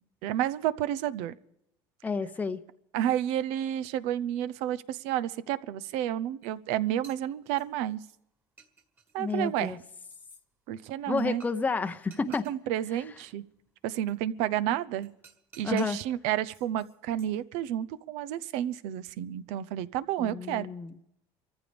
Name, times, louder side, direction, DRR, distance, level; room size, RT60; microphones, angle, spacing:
voice 1, 0.2-1.3 2.9-8.0 9.1-9.8 10.7-11.4 12.2-13.4 13.8-15.1 15.6-20.7, right 11 dB, 75° right, 15 dB, 0.7 m, -30 dB
voice 2, 2.0-2.6 9.2-9.8 11.1-12.5 15.6-16.0 20.2-20.9, left 4 dB, 15° left, 8 dB, 0.7 m, -30 dB
sound 1, 6.4-6.5 6.9-8.2 8.6-10.4 11.2-11.7 11.9-12.6 14.1-14.2 15.0-16.1 16.5-17.4, right 5 dB, 20° right, 1.8 m, -56 dB
26.5 x 14.5 x 3.4 m, 0.78 s
cardioid pair, 135°, 11 cm